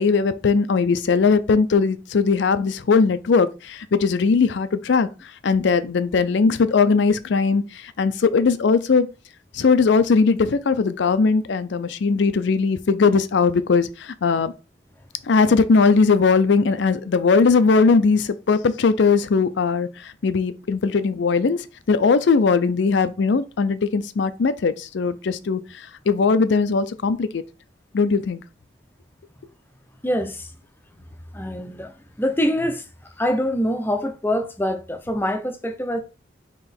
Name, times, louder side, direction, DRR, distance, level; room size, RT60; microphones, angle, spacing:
voice 1, 0.0-5.1 5.4-9.1 9.5-14.5 15.3-27.4 27.9-28.4, left 4 dB, 65° left, 0.4 m, -19 dB
voice 2, 30.0-30.5 31.3-32.9 33.2-36.0, equal, 10° left, 0.5 m, -24 dB
3.8 x 2.9 x 4.3 m
head